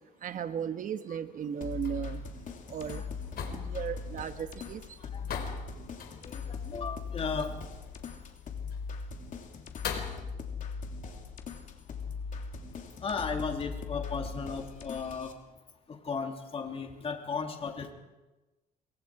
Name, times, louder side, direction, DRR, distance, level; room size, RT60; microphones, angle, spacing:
voice 1, 0.2-2.3 2.7-3.0 3.5-5.1, right 8 dB, 50° right, 10 dB, 1.3 m, -36 dB
sound 1, 1.4-10.2, left 7 dB, 65° left, 3.7 m, -44 dB
sound 2, 1.6-15.3, left 5 dB, 50° left, 3.2 m, -40 dB
voice 2, 5.0-5.4 6.2-7.5 13.0-15.3 15.9-17.9, left 5 dB, 35° left, 3 dB, 2.9 m, -36 dB
26.5 x 24.0 x 4.9 m, 1.1 s
cardioid pair, 110°, 17 cm